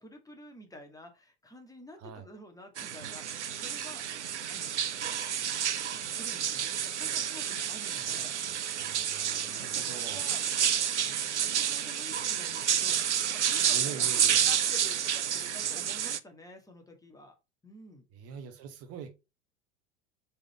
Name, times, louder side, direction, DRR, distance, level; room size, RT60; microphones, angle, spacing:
voice 1, 0.0-4.2 4.5-4.7 5.3-8.4 9.4-10.4 11.0-17.4 17.6-18.0, left 1 dB, 10° left, 1.9 m, -50 dB
voice 2, 2.0-2.3 8.0-10.3 13.7-14.4 18.1-19.1, right 7 dB, 45° right, 1.1 m, -44 dB
sound 1, 2.8-16.2, right 9 dB, 90° right, 0.5 m, -30 dB
5.0 x 4.3 x 4.3 m
figure-of-eight pair, 80°, 34 cm